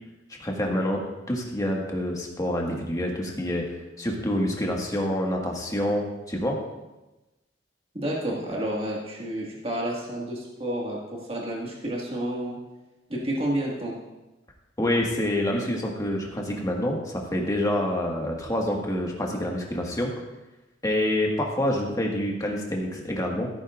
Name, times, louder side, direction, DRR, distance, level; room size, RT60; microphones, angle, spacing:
voice 1, 0.3-1.0 1.3-6.6 14.8-20.1 20.8-23.5, left 1 dB, 20° left, -1 dB, 1.7 m, -27 dB
voice 2, 7.9-12.6 13.1-13.9, right 1 dB, 30° right, -4 dB, 1.9 m, -30 dB
15.0 x 9.7 x 2.5 m, 1.0 s
head